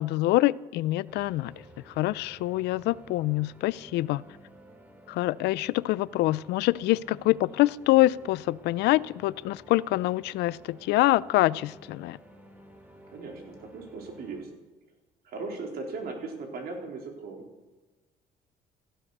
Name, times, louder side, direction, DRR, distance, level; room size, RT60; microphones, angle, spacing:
voice 1, 0.0-1.5 2.0-4.2 5.1-12.2, left 17 dB, 80° left, 20 dB, 0.5 m, -25 dB
sound 1, 1.1-14.4, right 1 dB, 10° right, 2.9 m, -52 dB
voice 2, 13.1-14.5 15.2-17.4, right 3 dB, 65° right, 2 dB, 4.1 m, -38 dB
16.5 x 12.5 x 6.6 m, 1.2 s
cardioid pair, 110°, 17 cm